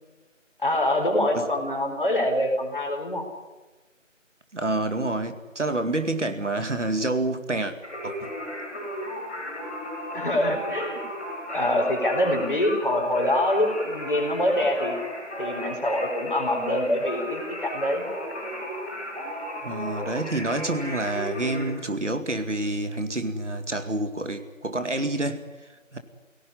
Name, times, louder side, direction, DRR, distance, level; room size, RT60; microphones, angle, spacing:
voice 1, 0.6-3.2 10.1-11.0 11.5-15.0 15.4-18.0, left 1 dB, 40° left, 3 dB, 4.4 m, -25 dB
voice 2, 4.5-7.7 8.0-8.3 19.6-25.4 25.9-26.0, right 2 dB, 65° right, 8 dB, 2.3 m, -28 dB
Singing, 7.8-21.6, equal, 10° left, 5.4 m, -34 dB
23.0 x 17.5 x 9.7 m, 1.2 s
figure-of-eight pair, 180°, 38 cm